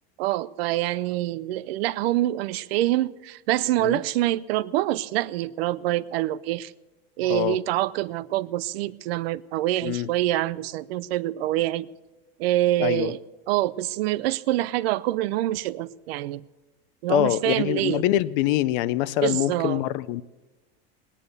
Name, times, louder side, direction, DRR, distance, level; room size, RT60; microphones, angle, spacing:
voice 1, 0.2-6.7 7.2-11.9 12.4-13.2 13.5-16.4 17.0-18.0 19.2-19.8, right 15 dB, 75° right, 0.6 m, -25 dB
voice 2, 12.8-13.1 17.1-20.2, left 14 dB, 60° left, 0.6 m, -24 dB
19.0 x 10.0 x 6.7 m
supercardioid pair, 160°, 31 cm